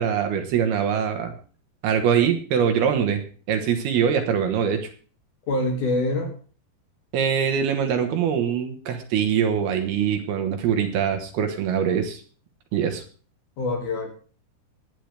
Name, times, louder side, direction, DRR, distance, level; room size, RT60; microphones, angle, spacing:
voice 1, 0.0-1.3 1.8-3.2 3.5-4.9 7.1-12.2 12.7-13.0, right 8 dB, 70° right, 6 dB, 3.1 m, -23 dB
voice 2, 5.5-6.3 13.6-14.1, left 2 dB, 50° left, 3 dB, 3.3 m, -25 dB
20.0 x 9.9 x 3.4 m, 0.39 s
omnidirectional pair, 5.1 m